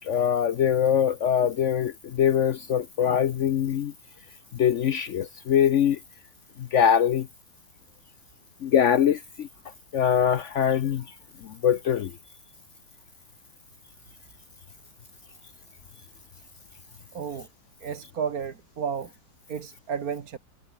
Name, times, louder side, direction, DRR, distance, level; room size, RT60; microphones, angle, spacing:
voice 1, 0.0-3.9 4.5-6.0 6.6-7.3 8.6-9.5 9.9-11.1 11.4-12.1, left 9 dB, 75° left, 0.6 m, -23 dB
voice 2, 17.1-17.5 17.8-19.1 19.5-20.4, right 7 dB, 50° right, 1.8 m, -32 dB
omnidirectional pair, 2.1 m